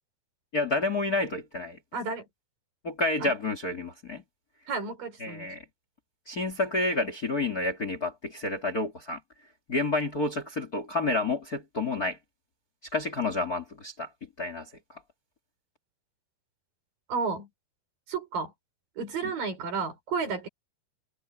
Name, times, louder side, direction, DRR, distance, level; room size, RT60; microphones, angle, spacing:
voice 1, 0.5-1.8 2.8-4.2 5.2-5.6 6.3-9.2 9.7-12.2 12.9-14.1 14.4-15.0 19.2-19.3, left 2 dB, 30° left, 2.2 m, -29 dB
voice 2, 1.9-2.3 3.2-3.3 4.7-5.5 17.1-17.5 18.1-18.5 19.0-20.5, right 5 dB, 60° right, 5.8 m, -32 dB
omnidirectional pair, 4.5 m